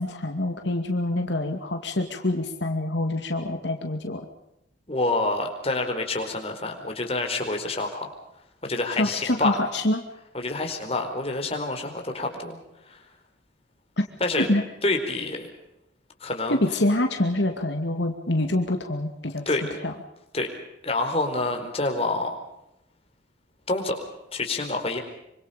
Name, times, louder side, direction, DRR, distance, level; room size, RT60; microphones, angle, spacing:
voice 1, 0.0-4.2 9.0-10.1 14.4-14.6 16.5-19.4 19.8-19.9, left 1 dB, 75° left, 4 dB, 2.5 m, -26 dB
voice 2, 4.9-8.1 8.6-9.6 10.3-12.6 12.8-13.0 14.2-14.5 14.8-15.5 16.2-16.6 19.5-19.6 20.3-20.5 20.8-22.3 23.7-24.0 24.3-25.0, left 2 dB, 35° left, 4 dB, 4.5 m, -27 dB
26.5 x 25.5 x 5.2 m, 0.84 s
head